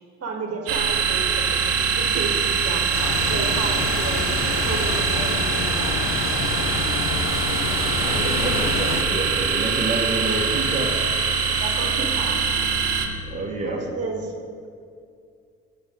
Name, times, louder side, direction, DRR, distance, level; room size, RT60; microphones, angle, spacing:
voice 1, 0.2-1.6 1.9-4.3 4.6-6.4 11.6-12.4 13.5-14.3, right 3 dB, 50° right, 1 dB, 1.5 m, -32 dB
sound 1, 0.7-13.1, right 6 dB, 80° right, 0.9 m, -23 dB
sound 2, 2.9-9.0, left 6 dB, 55° left, 0.7 m, -28 dB
voice 2, 8.0-10.9 13.2-13.8, right 2 dB, 20° right, -1 dB, 1.5 m, -28 dB
9.4 x 5.8 x 3.7 m, 2.4 s
hypercardioid pair, 50°, 32 cm